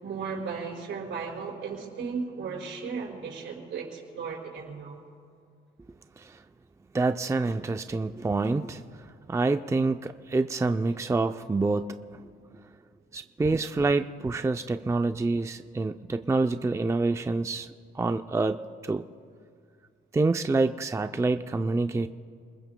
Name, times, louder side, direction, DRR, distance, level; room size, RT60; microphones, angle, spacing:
voice 1, 0.0-5.0, right 5 dB, 70° right, -1 dB, 5.4 m, -35 dB
voice 2, 6.9-8.8 9.3-12.0 13.1-17.7 17.9-19.0 20.1-22.1, right 3 dB, 15° right, 8 dB, 0.5 m, -27 dB
28.5 x 21.0 x 2.3 m, 2.2 s
cardioid pair, 90°, 20 cm